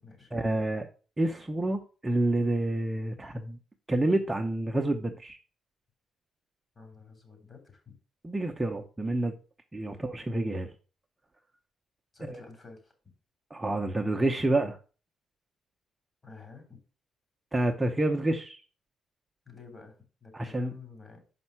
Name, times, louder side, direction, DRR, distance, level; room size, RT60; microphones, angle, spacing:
voice 1, 0.3-0.9 1.2-3.6 3.9-5.4 8.2-9.4 9.7-10.7 12.3-12.4 13.5-14.8 17.5-18.6 20.3-20.7, right 1 dB, 15° right, 0.7 m, -28 dB
voice 2, 6.7-8.0 12.1-13.1 16.2-16.8 19.4-21.2, left 4 dB, 30° left, 3.2 m, -50 dB
5.8 x 5.4 x 5.9 m
cardioid pair, 90°, 0 cm